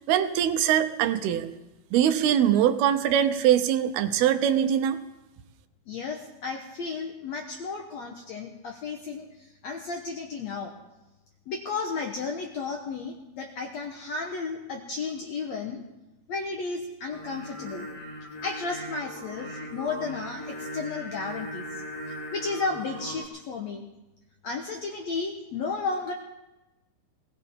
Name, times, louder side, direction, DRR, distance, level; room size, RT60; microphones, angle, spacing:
voice 1, 0.1-1.5 1.9-5.0, right 10 dB, 80° right, 9 dB, 2.7 m, -22 dB
voice 2, 5.9-10.7 11.5-15.8 16.3-17.9 18.4-21.8 22.1-23.8 24.4-26.1, left 4 dB, 70° left, 2 dB, 1.6 m, -33 dB
Singing, 17.1-23.3, equal, 10° left, 2.9 m, -39 dB
20.0 x 18.5 x 3.7 m, 1.0 s
omnidirectional pair, 4.6 m